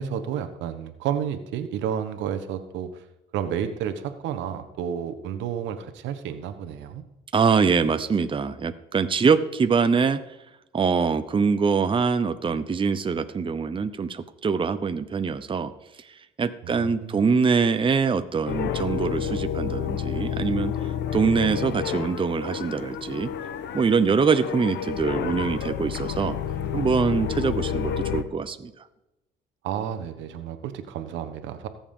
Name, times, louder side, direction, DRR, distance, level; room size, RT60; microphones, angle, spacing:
voice 1, 0.0-3.0 3.3-7.0 16.6-17.3 29.6-31.7, right 9 dB, 80° right, 9 dB, 1.1 m, -31 dB
voice 2, 7.3-10.2 10.7-15.7 16.0-16.1 16.4-20.7 21.1-23.3 23.7-26.4 26.7-28.7, right 5 dB, 25° right, 10 dB, 0.7 m, -24 dB
sound 1, 18.5-28.2, left 9 dB, 70° left, 0.9 m, -30 dB
19.0 x 7.2 x 3.7 m, 0.93 s
supercardioid pair, 80°, 19 cm